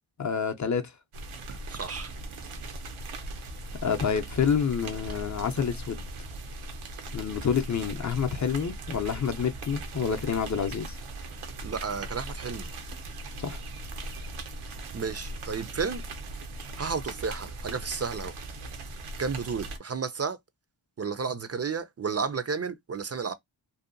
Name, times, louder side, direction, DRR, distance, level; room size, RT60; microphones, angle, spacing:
voice 1, 0.2-0.9 3.8-6.0 7.1-11.0 13.4-13.6, left 6 dB, 40° left, 0.5 m, -28 dB
sound 1, 1.1-19.8, right 2 dB, 85° right, 0.6 m, -39 dB
voice 2, 1.5-2.1 11.6-12.7 14.9-16.0 16.8-18.3 19.2-20.4 21.0-23.3, right 5 dB, 35° right, 0.4 m, -32 dB
2.7 x 2.2 x 2.4 m
cardioid pair, 50°, 48 cm